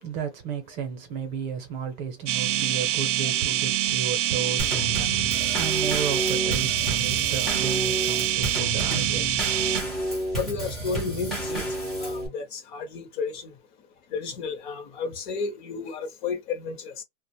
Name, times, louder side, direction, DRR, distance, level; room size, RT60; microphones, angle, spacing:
voice 1, 0.0-9.6, right 6 dB, 40° right, 0.7 m, -33 dB
sound 1, 2.3-9.8, right 13 dB, 70° right, 0.5 m, -25 dB
Drum kit / Snare drum / Bass drum, 4.6-12.3, right 1 dB, ahead, 0.4 m, -30 dB
voice 2, 10.4-11.7 12.0-13.5 14.1-17.0, left 5 dB, 40° left, 0.7 m, -32 dB
2.4 x 2.1 x 2.9 m
supercardioid pair, 155°, 37 cm